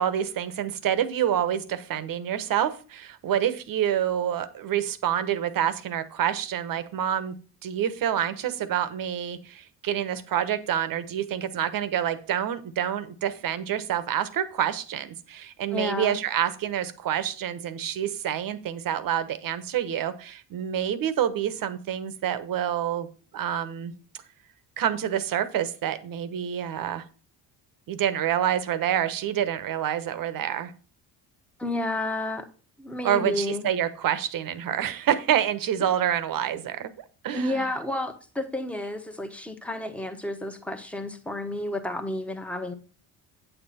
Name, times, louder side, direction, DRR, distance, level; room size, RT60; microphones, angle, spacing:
voice 1, 0.0-7.3 7.6-23.1 23.3-23.9 24.8-27.0 27.9-30.7 33.0-36.9 37.2-37.7, right 10 dB, 60° right, 13 dB, 1.1 m, -27 dB
voice 2, 15.7-16.2 31.6-32.5 32.8-33.7 37.3-42.7, left 1 dB, 5° left, 6 dB, 1.2 m, -31 dB
8.7 x 6.9 x 4.2 m, 0.38 s
cardioid pair, 115°, 39 cm